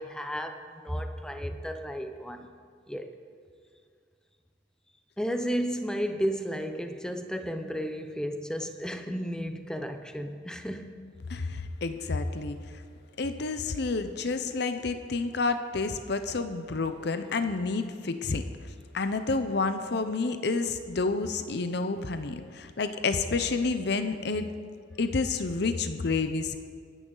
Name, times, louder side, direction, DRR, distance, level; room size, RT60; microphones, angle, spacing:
voice 1, 0.0-2.5 2.9-3.2 5.2-10.9, equal, 5° left, 7 dB, 0.7 m, -33 dB
voice 2, 11.3-12.6 13.2-18.4 18.9-24.5 25.0-26.6, left 3 dB, 60° left, 9 dB, 0.7 m, -29 dB
24.5 x 10.0 x 4.0 m, 2.1 s
head